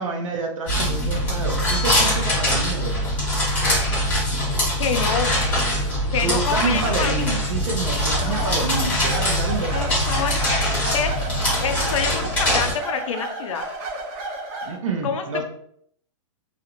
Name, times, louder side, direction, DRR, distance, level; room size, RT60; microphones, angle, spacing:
voice 1, 0.0-3.1 6.2-9.9 14.6-15.4, right 4 dB, 75° right, 3 dB, 0.6 m, -28 dB
sound 1, 0.7-12.7, equal, 10° left, 1.1 m, -23 dB
Bell, 1.7-3.8, left 4 dB, 30° left, 0.4 m, -38 dB
voice 2, 4.8-5.3 6.1-7.3 8.2-8.6 9.7-10.4 10.9-11.2 11.6-13.7 15.0-15.4, left 6 dB, 85° left, 6 dB, 0.4 m, -27 dB
sound 2, 8.1-14.8, right 2 dB, 30° right, 0.5 m, -33 dB
2.4 x 2.1 x 2.9 m, 0.66 s
hypercardioid pair, 165°, 16 cm